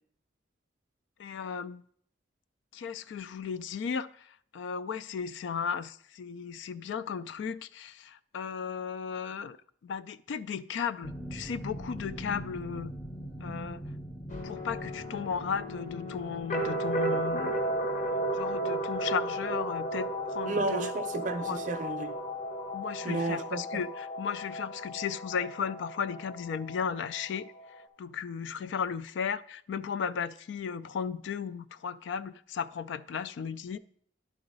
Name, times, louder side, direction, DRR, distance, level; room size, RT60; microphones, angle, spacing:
voice 1, 1.2-1.8 2.7-9.6 9.8-12.9 13.4-13.8 14.4-17.6 18.3-20.9 21.5-21.6 22.7-27.5 28.0-33.8, left 6 dB, 70° left, 0.3 m, -35 dB
sound 1, 11.0-21.7 22.0-22.3 22.7-22.9, equal, 5° left, 0.5 m, -44 dB
sound 2, 14.3-27.9, right 1 dB, 40° left, 0.9 m, -34 dB
voice 2, 20.4-22.1 23.0-23.8, right 3 dB, 40° right, 0.6 m, -32 dB
11.0 x 3.9 x 5.3 m
head